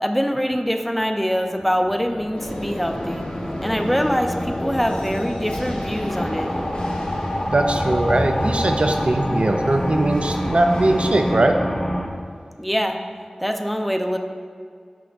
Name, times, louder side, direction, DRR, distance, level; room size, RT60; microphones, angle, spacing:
voice 1, 0.0-3.2 3.6-6.5 12.6-13.0 13.4-14.2, equal, ahead, 5 dB, 0.5 m, -24 dB
sound 1, 1.4-12.1, equal, 40° left, 0.7 m, -27 dB
sound 2, 2.4-11.3, equal, 85° left, 1.2 m, -33 dB
voice 2, 7.5-11.6, right 2 dB, 60° right, 5 dB, 0.5 m, -20 dB
6.2 x 5.0 x 3.5 m, 2.1 s
wide cardioid pair, 45°, 2 cm